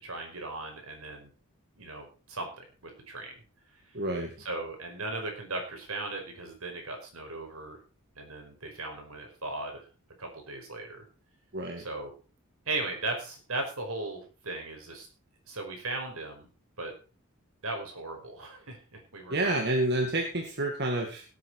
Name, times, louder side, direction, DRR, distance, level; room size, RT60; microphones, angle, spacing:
voice 1, 0.0-1.3 1.8-3.3 3.7-3.9 4.4-7.8 8.1-9.9 10.2-11.0 11.8-12.1 12.6-15.1 15.5-16.5 16.8-16.9 17.6-19.6, right 2 dB, 75° right, 3 dB, 5.2 m, -37 dB
voice 2, 3.9-4.3 11.5-11.8 19.3-21.2, right 1 dB, 50° right, 2 dB, 2.1 m, -29 dB
17.5 x 8.4 x 4.8 m, 0.35 s
head